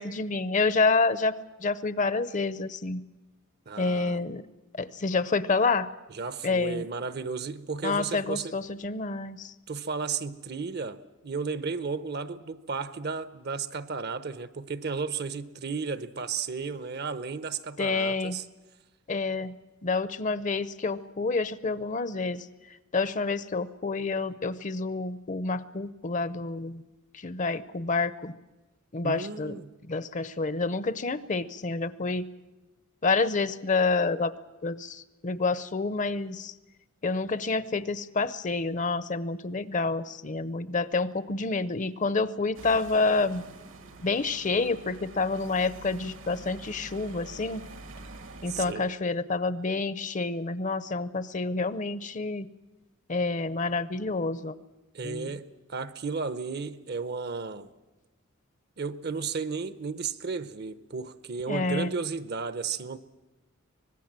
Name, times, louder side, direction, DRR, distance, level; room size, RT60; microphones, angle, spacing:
voice 1, 0.0-1.3 1.6-3.0 3.8-4.4 4.8-5.9 6.4-6.9 7.8-9.5 17.8-18.4 19.1-19.5 19.8-26.8 27.1-28.3 28.9-29.5 29.8-32.3 33.0-34.3 34.6-36.5 37.0-43.5 44.0-47.6 48.4-52.5 53.1-54.5 55.0-55.3 61.5-61.9, left 3 dB, 35° left, 0.7 m, -28 dB
voice 2, 3.7-4.2 6.1-8.5 9.7-18.4 29.0-29.7 48.5-48.9 54.9-57.7 58.8-63.0, right 5 dB, 50° right, 0.8 m, -34 dB
sound 1, 42.5-48.7, right 2 dB, 70° right, 1.4 m, -46 dB
24.5 x 19.5 x 7.5 m
head